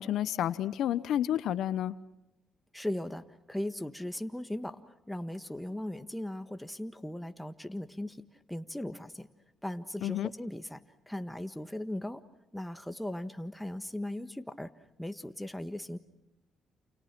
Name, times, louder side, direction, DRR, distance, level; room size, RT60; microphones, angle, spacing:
voice 1, 0.0-2.0 10.0-10.3, left 11 dB, 75° left, 15 dB, 0.9 m, -30 dB
voice 2, 2.7-8.2 8.5-9.3 9.6-10.8 11.1-12.2 12.5-14.7 15.0-16.0, left 1 dB, 5° left, 9 dB, 1.5 m, -38 dB
29.0 x 28.5 x 6.1 m, 0.92 s
cardioid pair, 90°, 0 cm